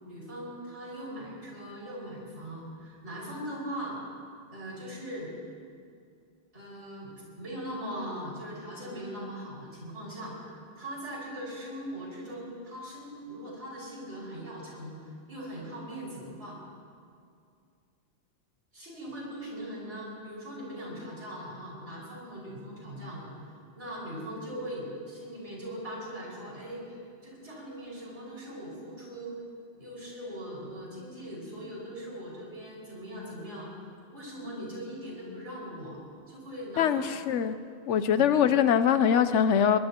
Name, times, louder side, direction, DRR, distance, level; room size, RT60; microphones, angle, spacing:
voice 1, 0.0-4.0 4.5-5.3 6.5-16.6 18.7-23.3 23.8-29.3 29.8-33.7 34.1-36.0 36.3-37.1 37.9-38.2, equal, 70° right, -6 dB, 5.9 m, -40 dB
voice 2, 36.8-37.6 37.9-39.8, left 8 dB, 75° left, 11 dB, 1.0 m, -23 dB
22.0 x 21.0 x 2.9 m, 2.3 s
omnidirectional pair, 1.2 m